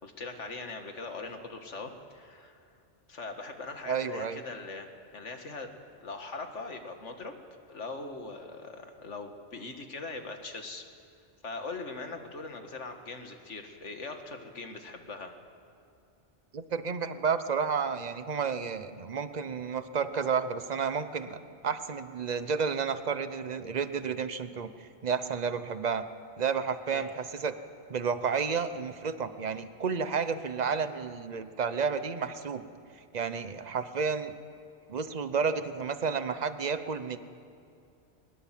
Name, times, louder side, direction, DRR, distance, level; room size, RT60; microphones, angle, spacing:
voice 1, 0.0-2.7 3.1-5.8 6.0-7.4 7.7-10.9 11.4-15.4 23.7-23.8 26.9-27.1, left 3 dB, 90° left, 5 dB, 2.1 m, -41 dB
voice 2, 3.9-4.4 16.5-21.4 21.6-26.0 26.4-27.5 27.9-32.6 33.1-34.3 34.9-37.2, right 6 dB, 40° right, 11 dB, 1.0 m, -31 dB
22.0 x 20.5 x 7.6 m, 2.5 s
omnidirectional pair, 1.2 m